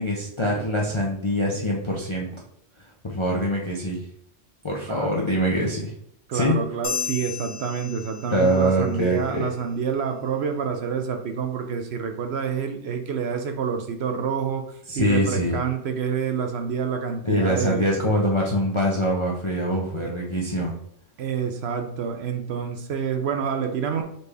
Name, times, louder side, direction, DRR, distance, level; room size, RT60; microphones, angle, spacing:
voice 1, 0.0-2.3 3.0-4.0 4.6-5.9 6.3-6.5 8.3-9.5 14.9-15.6 17.2-20.7, equal, 40° left, -2 dB, 0.4 m, -24 dB
voice 2, 6.3-17.8 20.0-20.2 21.2-24.0, right 6 dB, 65° right, 5 dB, 0.7 m, -28 dB
sound 1, 6.8-8.7, left 6 dB, 65° left, 1.2 m, -33 dB
4.2 x 3.3 x 3.3 m, 0.71 s
omnidirectional pair, 1.3 m